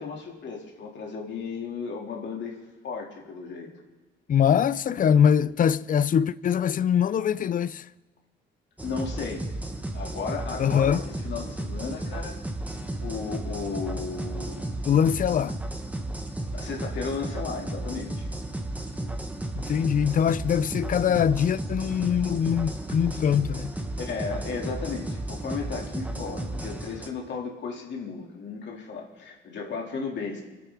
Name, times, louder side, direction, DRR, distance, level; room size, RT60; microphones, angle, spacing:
voice 1, 0.0-2.6 2.8-3.7 8.8-9.4 9.9-12.4 13.0-14.8 16.5-18.3 20.0-20.1 24.0-30.4, left 5 dB, 65° left, 2.5 m, -34 dB
voice 2, 4.3-7.9 10.6-11.0 14.9-15.6 19.6-23.7, left 8 dB, 45° left, 0.5 m, -23 dB
sound 1, 8.8-27.1, right 1 dB, 5° right, 1.3 m, -34 dB
27.0 x 9.3 x 3.6 m
cardioid pair, 90°, 20 cm